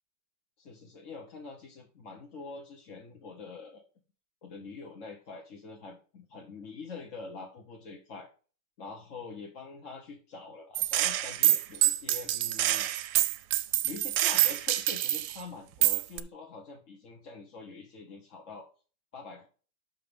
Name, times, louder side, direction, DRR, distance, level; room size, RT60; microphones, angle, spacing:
voice 1, 0.6-3.8 4.4-8.3 8.8-12.9 13.8-18.7 19.1-19.5, left 4 dB, 50° left, 0 dB, 1.3 m, -45 dB
Gunshot gunfire, 10.7-15.4 15.8-16.2, right 13 dB, 75° right, 1.1 m, -26 dB
5.9 x 5.3 x 5.1 m, 0.37 s
omnidirectional pair, 1.9 m